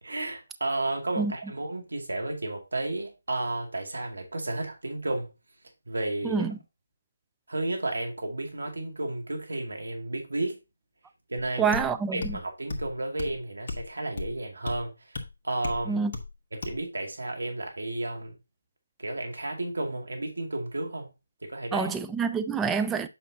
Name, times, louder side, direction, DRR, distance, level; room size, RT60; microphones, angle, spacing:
voice 1, 0.0-5.3 5.9-6.4 7.5-10.6 11.3-11.8 12.1-15.2 15.4-16.0 16.5-18.4 19.0-21.1 21.4-21.9, right 2 dB, 70° right, 2.3 m, -32 dB
voice 2, 6.2-6.6 11.6-12.4 15.9-16.1 21.7-23.1, right 5 dB, 10° right, 0.4 m, -27 dB
sound 1, 11.7-11.9 12.2-12.4 12.7-12.9 13.2-13.3 13.7-13.8 14.2-14.3 14.7-14.8 15.1-15.3 15.6-15.8 16.1-16.3 16.6-16.8, left 3 dB, 40° left, 1.4 m, -34 dB
8.2 x 5.6 x 2.8 m
figure-of-eight pair, 150°, 0 cm